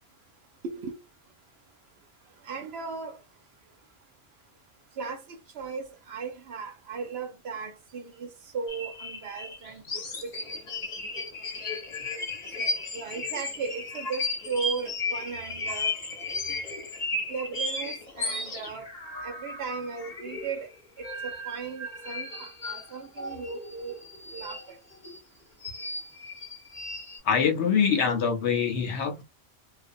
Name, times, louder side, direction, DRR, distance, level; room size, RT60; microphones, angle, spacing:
voice 1, 0.6-1.0 2.4-3.2 5.0-10.3 12.6-15.9 17.3-18.9 19.2-20.7 21.0-24.0 24.3-24.8, right 5 dB, 65° right, 0.8 m, -37 dB
sound 1, 8.7-20.7 21.0-25.2 25.6-27.2, left 2 dB, 40° left, 0.8 m, -35 dB
voice 2, 27.2-29.2, left 7 dB, 70° left, 0.9 m, -24 dB
2.4 x 2.2 x 2.5 m
omnidirectional pair, 1.3 m